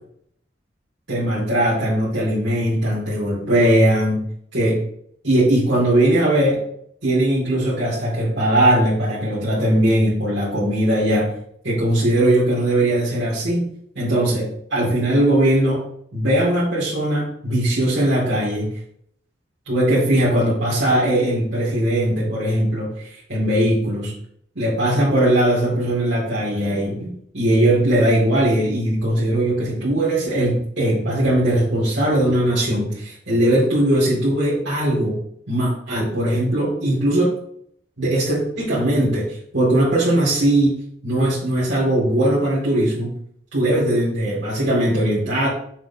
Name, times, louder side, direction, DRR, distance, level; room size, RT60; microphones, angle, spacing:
voice 1, 1.1-4.2 4.5-4.8 5.2-6.6 7.0-11.3 11.6-13.7 14.0-15.8 16.1-18.7 19.7-24.1 24.6-35.2 35.5-37.3 38.0-40.8 41.0-43.1 43.5-45.5, right 1 dB, 85° right, -8 dB, 2.6 m, -19 dB
7.1 x 6.0 x 2.9 m, 0.67 s
head